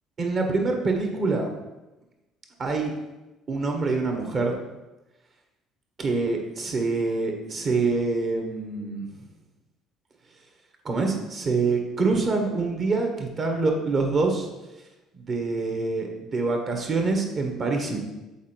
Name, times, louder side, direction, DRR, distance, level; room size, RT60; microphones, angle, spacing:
voice 1, 0.2-1.5 2.6-2.9 3.5-4.6 6.0-9.1 10.8-14.5 15.1-18.0, right 3 dB, 45° right, 3 dB, 1.5 m, -25 dB
7.3 x 4.3 x 4.5 m, 1.1 s
hypercardioid pair, 55°, 0 cm